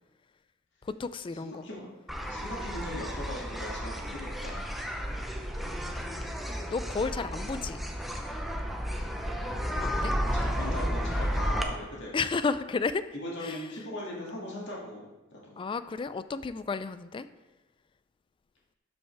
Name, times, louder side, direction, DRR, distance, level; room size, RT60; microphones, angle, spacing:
voice 1, 0.8-1.7 5.5-7.8 10.0-10.2 12.1-13.1 13.4-13.6 15.6-17.3, left 4 dB, 25° left, 13 dB, 0.3 m, -33 dB
voice 2, 1.4-1.9 2.3-4.6 10.3-12.2 13.1-15.1 15.3-15.5, left 1 dB, 65° left, -4 dB, 2.1 m, -39 dB
sound 1, 2.1-11.6, equal, ahead, 0.7 m, -32 dB
12.0 x 5.4 x 3.4 m, 1.1 s
head